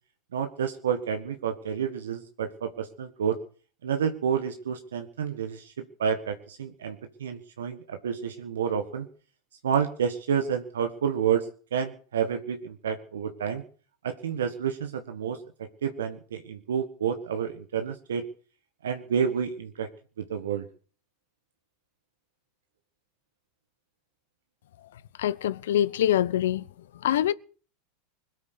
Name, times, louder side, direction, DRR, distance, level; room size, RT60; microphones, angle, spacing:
voice 1, 0.3-3.4 3.8-9.1 9.6-13.6 14.0-15.4 15.8-18.2 18.8-19.9 20.2-20.6, right 7 dB, 80° right, 1.5 m, -29 dB
voice 2, 25.2-26.6 27.0-27.3, left 11 dB, 75° left, 0.8 m, -24 dB
21.5 x 8.7 x 6.7 m
hypercardioid pair, 95°, 0 cm